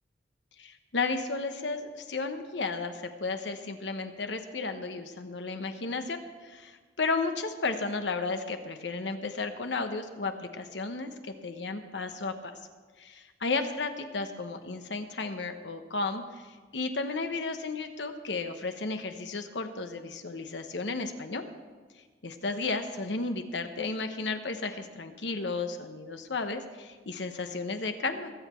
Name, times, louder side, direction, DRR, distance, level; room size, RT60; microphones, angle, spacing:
voice 1, 0.6-12.5 13.0-13.1 13.4-21.5 22.2-28.3, left 3 dB, 80° left, 7 dB, 1.1 m, -33 dB
21.0 x 8.3 x 4.5 m, 1.4 s
head